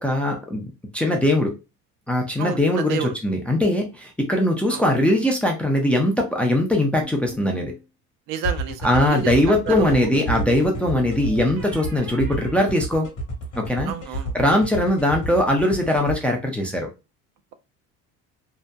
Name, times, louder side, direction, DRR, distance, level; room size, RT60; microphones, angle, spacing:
voice 1, 0.0-1.5 2.1-7.7 8.8-13.1 13.6-13.9 14.3-16.9, left 1 dB, 5° left, 0.4 m, -21 dB
voice 2, 2.4-3.1 4.7-4.8 8.3-9.3 9.7-10.1 13.9-14.4, right 8 dB, 75° right, 0.5 m, -30 dB
sound 1, 7.0-7.8 9.7-13.5, right 2 dB, 90° right, 1.0 m, -39 dB
sound 2, 8.4-16.1, right 1 dB, 45° left, 1.0 m, -30 dB
2.7 x 2.1 x 2.2 m
cardioid pair, 130°, 34 cm